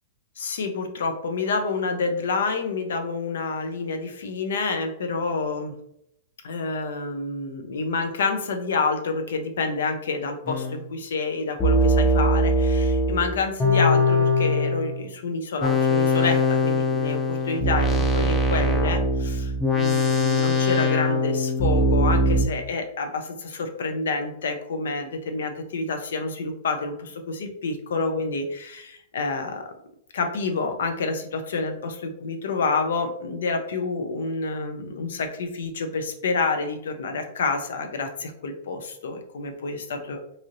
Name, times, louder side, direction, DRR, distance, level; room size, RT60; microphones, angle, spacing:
voice 1, 0.4-5.7 6.4-29.7 30.1-40.2, left 4 dB, 85° left, 6 dB, 0.5 m, -28 dB
sound 1, 10.5-10.8 11.6-15.0 15.6-22.4, left 1 dB, 10° left, 0.5 m, -21 dB
3.0 x 2.7 x 2.5 m, 0.74 s
supercardioid pair, 155°, 0 cm